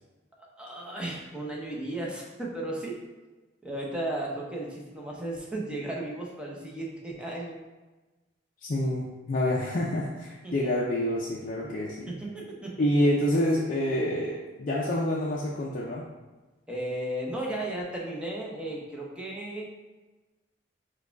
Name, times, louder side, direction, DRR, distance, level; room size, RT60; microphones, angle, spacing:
voice 1, 0.6-3.0 3.6-7.6 10.4-10.7 12.1-12.7 16.7-19.6, right 1 dB, 5° right, -3 dB, 0.7 m, -35 dB
voice 2, 8.6-12.1 12.8-16.0, left 1 dB, 45° left, -4 dB, 0.4 m, -27 dB
4.6 x 2.3 x 4.5 m, 1.2 s
head